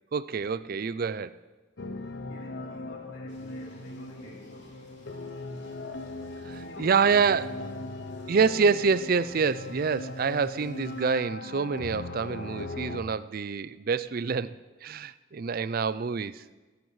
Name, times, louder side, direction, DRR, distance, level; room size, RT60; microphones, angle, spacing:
voice 1, 0.1-1.4 6.5-7.5 8.3-14.5 14.8-16.4, right 5 dB, 45° right, 0.4 m, -27 dB
sound 1, 1.8-13.0, left 2 dB, 55° left, 0.8 m, -39 dB
voice 2, 2.3-4.8 6.6-8.2, left 1 dB, 85° left, 3.4 m, -50 dB
sound 2, 3.3-11.1, equal, 35° left, 3.3 m, -56 dB
24.5 x 13.0 x 3.2 m
head